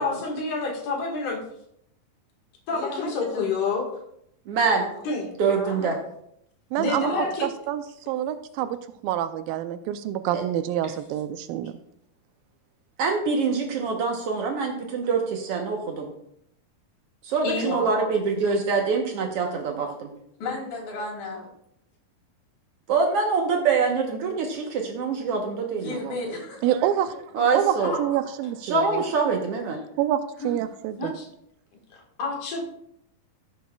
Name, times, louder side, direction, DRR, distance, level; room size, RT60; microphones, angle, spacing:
voice 1, 0.0-1.4 2.7-3.9 5.0-5.3 6.8-7.5 10.8-10.9 17.4-17.7 27.8-28.3 31.0-31.3 32.2-32.6, left 3 dB, 65° left, -1 dB, 3.2 m, -28 dB
voice 2, 2.7-3.5 4.7-5.1 5.5-6.0 6.8-7.3 17.6-18.2 20.4-21.5 25.7-26.7 30.4-30.5, left 2 dB, 85° left, 0 dB, 3.9 m, -34 dB
voice 3, 4.5-4.8 5.4-6.0 10.3-10.5 13.0-16.1 17.2-20.1 22.9-26.1 27.3-27.9 28.6-29.8, right 4 dB, 70° right, 2 dB, 1.5 m, -25 dB
voice 4, 6.7-7.1 7.4-8.8 9.0-11.7 26.6-27.2 27.5-29.0 30.0-31.1, right 11 dB, 90° right, 10 dB, 2.3 m, -27 dB
15.5 x 7.3 x 2.3 m, 0.73 s
omnidirectional pair, 4.0 m